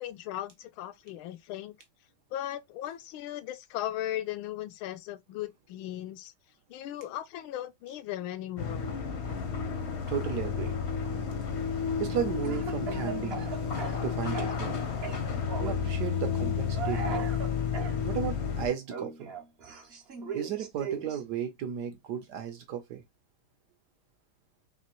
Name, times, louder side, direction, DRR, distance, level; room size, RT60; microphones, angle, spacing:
voice 1, 0.0-1.7 2.3-6.3 6.7-8.9, left 12 dB, 80° left, 1.4 m, -37 dB
sound 1, 8.6-18.7, left 6 dB, 50° left, 0.8 m, -31 dB
voice 2, 10.1-10.7 12.0-13.5 14.0-14.7 15.6-17.3 18.0-19.3 20.3-23.0, right 8 dB, 65° right, 1.1 m, -34 dB
Speech / Cough, 12.4-14.7 15.0-15.8 16.7-18.0 18.9-21.2, right 6 dB, 50° right, 0.7 m, -38 dB
4.2 x 2.9 x 2.9 m
omnidirectional pair, 2.2 m